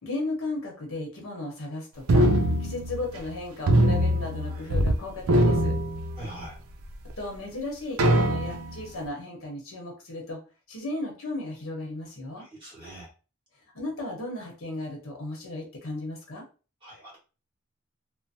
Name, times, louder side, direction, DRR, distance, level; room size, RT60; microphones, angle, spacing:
voice 1, 0.0-5.8 7.2-10.4 10.7-12.4 13.7-16.4, left 2 dB, 85° left, 0 dB, 1.0 m, -35 dB
sound 1, 2.1-3.3 3.7-5.0 5.2-6.5 7.1-7.2 8.0-8.8, right 1 dB, 90° right, 0.5 m, -22 dB
voice 2, 6.2-6.5 12.3-13.1 16.8-17.2, right 1 dB, 25° right, -6 dB, 1.5 m, -42 dB
3.0 x 2.0 x 2.7 m, 0.34 s
head